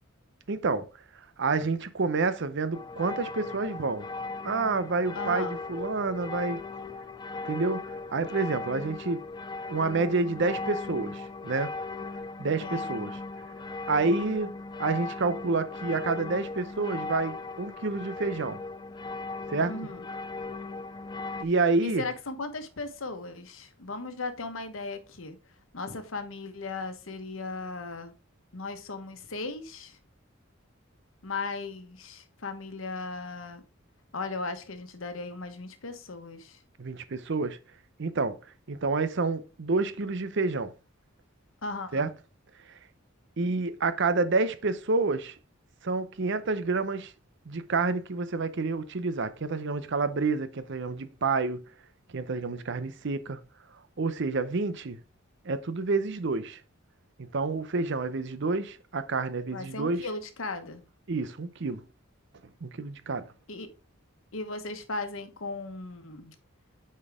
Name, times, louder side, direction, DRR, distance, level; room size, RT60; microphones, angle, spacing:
voice 1, 0.5-0.9 1.4-4.1 4.4-6.6 7.4-9.2 9.7-11.7 12.4-13.2 13.9-14.5 14.8-18.6 19.5-19.7 21.4-22.0 36.8-37.6 38.0-38.4 38.7-40.7 41.9-42.1 43.4-45.3 45.8-47.1 47.5-51.6 52.1-53.4 54.0-55.0 55.4-56.6 57.2-60.1 61.1-61.8 62.6-63.3, right 3 dB, 60° right, 0.7 m, -28 dB
sound 1, 2.7-21.4, left 3 dB, 20° left, 0.4 m, -38 dB
voice 2, 5.1-5.5 12.6-12.9 19.7-20.0 21.8-25.4 25.7-28.1 28.5-30.0 31.2-33.6 34.1-36.6 41.6-42.1 59.5-60.8 63.5-63.7 64.3-66.3, left 3 dB, 75° left, 1.1 m, -37 dB
8.6 x 4.4 x 3.5 m
head